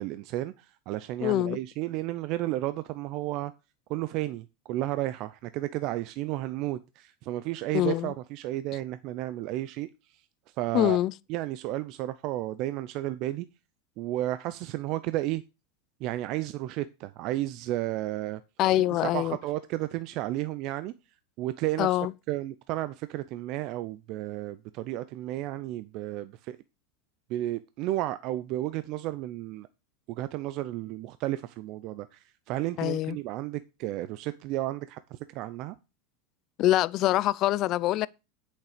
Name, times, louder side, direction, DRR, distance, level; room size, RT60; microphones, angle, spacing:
voice 1, 0.0-3.5 3.9-9.9 10.6-11.0 11.3-13.5 14.0-15.4 16.0-18.4 18.9-20.9 21.4-21.9 22.3-26.6 27.3-29.7 30.1-35.8, right 15 dB, 55° right, 0.7 m, -32 dB
voice 2, 1.2-1.6 7.7-8.1 10.7-11.1 18.6-19.4 21.8-22.1 32.8-33.2 36.6-38.1, left 15 dB, 45° left, 0.5 m, -24 dB
8.3 x 6.8 x 5.1 m
hypercardioid pair, 110°, 0 cm